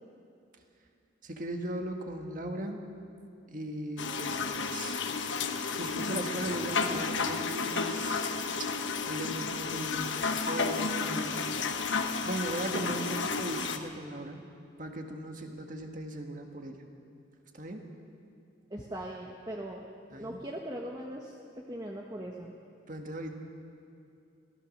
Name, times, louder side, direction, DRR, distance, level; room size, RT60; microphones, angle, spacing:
voice 1, 1.2-2.8 3.5-4.4 4.7-5.0 5.8-8.2 8.6-8.8 9.1-11.4 12.3-14.4 14.8-16.8 17.5-17.8 20.1-20.4 22.9-23.3, right 1 dB, 40° right, 3 dB, 1.8 m, -38 dB
sound 1, 4.0-13.8, left 4 dB, 70° left, 1.2 m, -32 dB
voice 2, 18.7-19.8 20.2-21.3 21.7-22.5, right 1 dB, 20° right, -1 dB, 1.1 m, -39 dB
25.0 x 16.0 x 6.6 m, 2.6 s
head